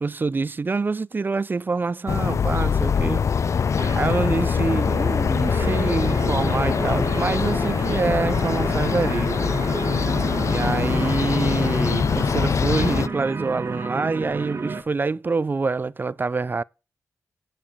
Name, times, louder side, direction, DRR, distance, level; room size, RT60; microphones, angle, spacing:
voice 1, 0.0-3.3 3.9-9.5 10.4-16.6, right 4 dB, 35° right, 0.4 m, -26 dB
sound 1, 2.1-13.1, left 6 dB, 55° left, 0.4 m, -23 dB
sound 2, 3.8-14.8, right 4 dB, 50° right, 1.4 m, -31 dB
sound 3, 6.5-13.8, left 2 dB, 30° left, 6.7 m, -47 dB
9.8 x 5.2 x 5.5 m
cardioid pair, 55°, 6 cm